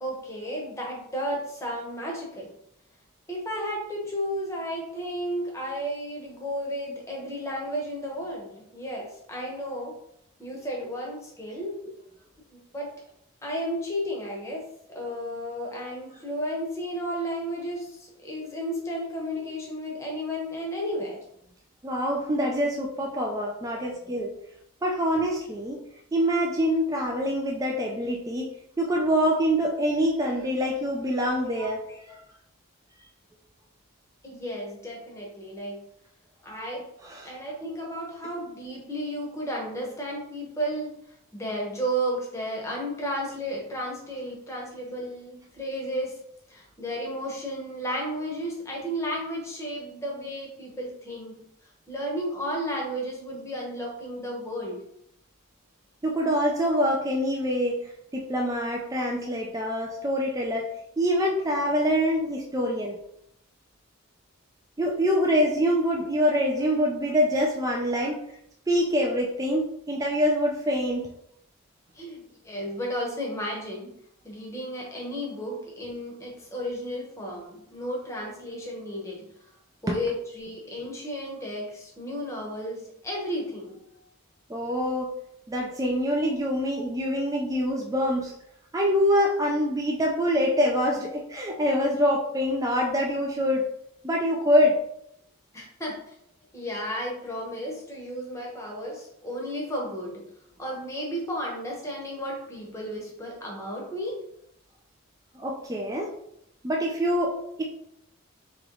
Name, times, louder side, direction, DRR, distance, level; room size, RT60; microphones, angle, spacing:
voice 1, 0.0-2.5 3.3-9.9 10.4-11.9 12.5-12.9 13.4-14.6 14.9-21.2 31.5-32.0 34.2-35.8 36.4-36.9 37.2-41.0 41.3-46.2 46.5-51.4 51.9-54.8 58.9-59.2 59.8-59.9 71.9-73.9 74.2-79.2 79.8-83.8 95.5-96.1 96.5-100.2 100.6-104.2, equal, 15° left, -2 dB, 0.8 m, -33 dB
voice 2, 21.8-24.3 24.8-25.8 26.1-28.5 28.8-31.8 37.0-37.3 56.0-57.8 58.1-60.7 61.0-63.0 64.8-68.2 68.7-71.1 79.9-80.0 84.5-85.1 85.5-88.3 88.7-93.7 94.0-94.8 105.4-106.1 106.6-107.6, equal, 15° right, 0 dB, 0.3 m, -25 dB
3.0 x 3.0 x 3.8 m, 0.75 s
head